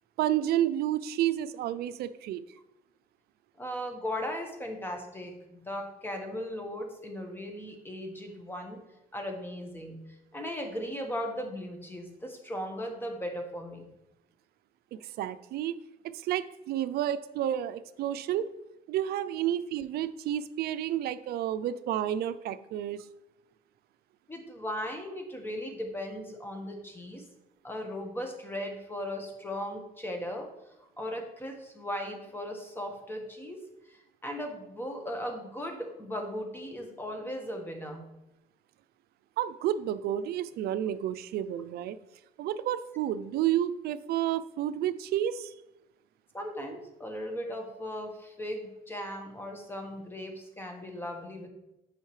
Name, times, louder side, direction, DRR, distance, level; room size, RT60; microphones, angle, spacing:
voice 1, 0.2-2.4 14.9-15.8 16.0-18.5 18.9-23.0 39.4-42.0 42.4-45.5, right 11 dB, 70° right, 14 dB, 0.4 m, -30 dB
voice 2, 3.6-8.8 9.1-10.0 10.3-13.9 24.3-27.2 27.6-30.5 31.0-33.6 33.9-38.0 46.3-51.5, equal, 10° left, 3 dB, 1.3 m, -37 dB
8.9 x 5.5 x 3.2 m, 0.92 s
cardioid pair, 110°, 17 cm